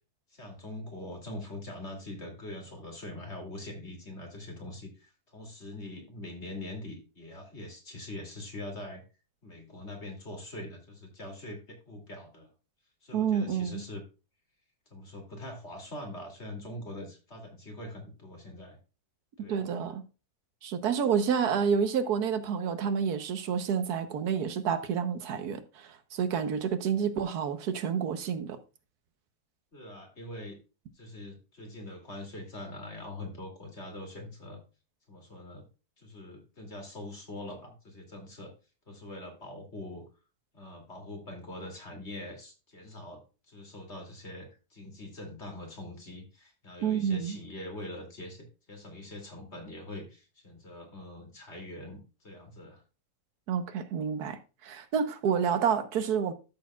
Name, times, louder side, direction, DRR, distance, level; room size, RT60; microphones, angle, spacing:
voice 1, 0.3-9.0 9.4-12.5 13.0-14.0 14.9-18.8 19.4-19.6 29.7-30.6 30.9-34.6 35.1-35.6 36.0-38.5 38.9-40.0 40.5-52.8, left 1 dB, 45° left, 2.9 m, -43 dB
voice 2, 13.1-13.8 19.4-20.0 20.6-28.6 46.8-47.4 53.5-56.3, right 7 dB, 80° right, 1.4 m, -29 dB
13.0 x 6.8 x 2.3 m
omnidirectional pair, 1.6 m